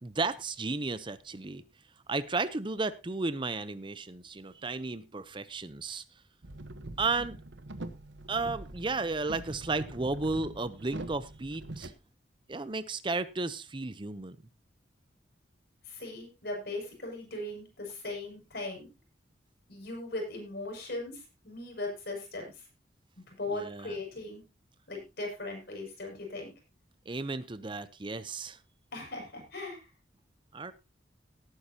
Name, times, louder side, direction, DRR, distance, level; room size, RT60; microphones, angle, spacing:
voice 1, 0.0-1.6 2.1-6.0 7.0-7.4 8.3-11.9 12.5-14.4 23.5-23.9 27.1-28.6 30.5-30.7, right 3 dB, 30° right, 14 dB, 0.6 m, -33 dB
sound 1, 6.4-11.9, right 1 dB, 90° right, 1.1 m, -44 dB
voice 2, 15.8-18.9 19.7-22.6 23.2-24.4 24.9-26.5 28.9-29.9, left 2 dB, 60° left, 1 dB, 6.4 m, -39 dB
18.0 x 9.3 x 2.8 m, 0.26 s
head